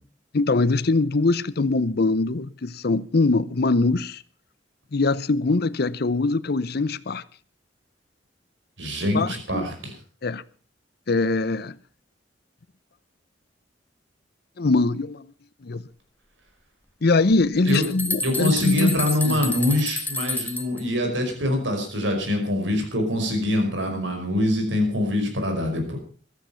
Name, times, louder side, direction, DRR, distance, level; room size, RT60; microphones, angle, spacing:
voice 1, 0.3-4.2 4.9-7.2 9.1-9.7 10.2-10.4 11.1-11.8 14.6-15.3 15.6-15.8 17.0-19.5, left 3 dB, 60° left, 0.7 m, -22 dB
voice 2, 8.8-9.9 17.6-17.8 18.2-26.0, left 1 dB, 80° right, 5.3 m, -24 dB
sound 1, 17.3-20.8, left 2 dB, 10° left, 1.6 m, -30 dB
15.5 x 13.0 x 5.7 m
head